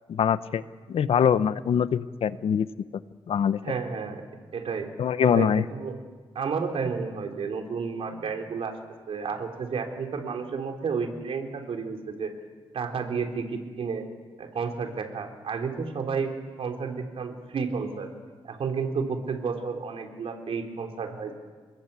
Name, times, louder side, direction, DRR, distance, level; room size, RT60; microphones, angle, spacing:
voice 1, 0.1-0.6 0.9-2.7 3.3-3.6 5.0-5.6, left 8 dB, 85° left, 14 dB, 0.9 m, -23 dB
voice 2, 3.6-4.2 4.5-4.9 5.2-5.9 6.4-8.7 9.1-12.3 12.7-14.1 14.4-16.3 16.6-18.1 18.4-21.3, right 5 dB, 75° right, 3 dB, 3.6 m, -31 dB
28.0 x 21.0 x 8.4 m, 1.5 s
wide cardioid pair, 150°, 10 cm